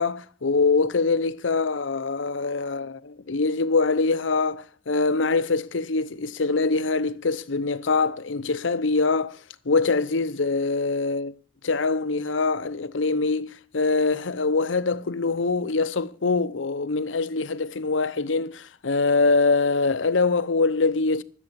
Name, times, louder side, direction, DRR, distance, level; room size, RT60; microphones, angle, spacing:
voice 1, 0.0-9.4 9.7-11.3 11.6-21.2, left 3 dB, 85° left, 0.8 m, -24 dB
13.5 x 8.2 x 6.9 m
head